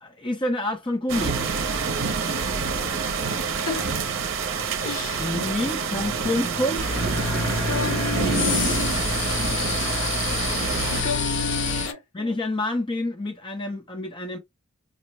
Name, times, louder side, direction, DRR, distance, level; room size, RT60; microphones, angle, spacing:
voice 1, 0.0-1.4 5.2-6.9 12.1-14.4, left 1 dB, 25° left, 0.5 m, -27 dB
sound 1, 1.1-11.0, right 5 dB, 60° right, 0.6 m, -27 dB
voice 2, 3.7-4.0 4.8-5.3 7.6-9.0 10.6-12.0, left 3 dB, 75° left, 1.8 m, -31 dB
sound 2, 6.8-11.9, left 3 dB, 60° left, 0.7 m, -27 dB
5.3 x 2.0 x 3.0 m
head